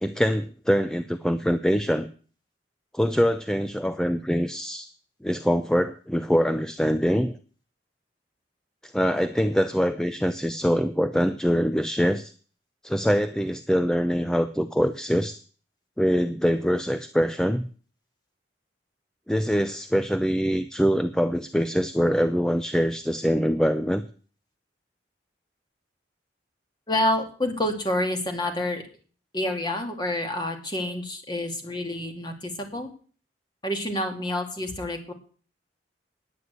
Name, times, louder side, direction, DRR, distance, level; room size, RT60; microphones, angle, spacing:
voice 1, 0.0-2.1 2.9-4.9 5.2-7.4 8.9-12.3 12.8-15.4 16.0-17.6 19.3-24.0, equal, 5° left, 10 dB, 0.5 m, -24 dB
voice 2, 26.9-28.8 29.3-32.9 33.6-35.1, left 1 dB, 25° left, 4 dB, 2.6 m, -28 dB
9.6 x 9.5 x 8.1 m, 0.41 s
head